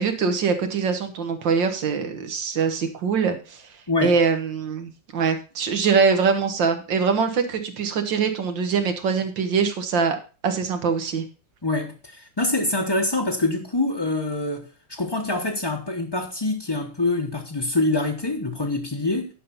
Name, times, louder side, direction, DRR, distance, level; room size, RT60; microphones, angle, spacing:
voice 1, 0.0-3.6 4.0-10.2 10.4-11.3, right 5 dB, 90° right, 2.1 m, -23 dB
voice 2, 3.9-4.2 11.6-19.3, left 2 dB, 20° left, 0.7 m, -25 dB
10.5 x 5.7 x 5.5 m
omnidirectional pair, 1.9 m